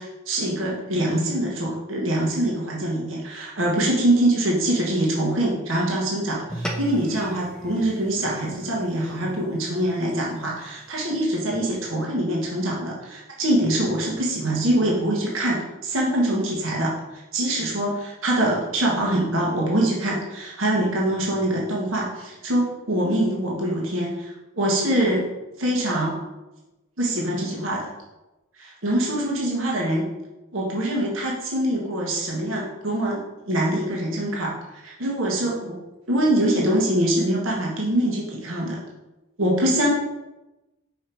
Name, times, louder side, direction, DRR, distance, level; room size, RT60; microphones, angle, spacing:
voice 1, 0.0-25.2 25.6-26.2 27.0-27.9 28.5-30.1 30.5-33.2 33.5-35.8 36.1-38.8 39.4-39.9, right 1 dB, 65° right, -3 dB, 1.3 m, -24 dB
sound 1, 6.5-11.1, right 1 dB, 5° left, 0.6 m, -38 dB
5.2 x 4.6 x 4.5 m, 1.0 s
head